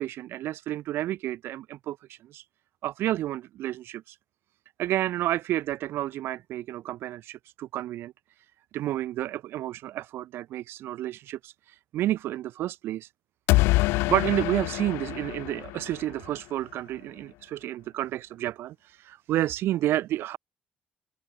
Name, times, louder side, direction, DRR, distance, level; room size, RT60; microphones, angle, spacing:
voice 1, 0.0-2.4 2.8-4.2 4.8-8.1 8.7-13.1 14.1-20.4, right 14 dB, 70° right, 0.6 m, -30 dB
sound 1, 13.5-16.4, left 22 dB, 80° left, 0.6 m, -25 dB
hypercardioid pair, 60°, 4 cm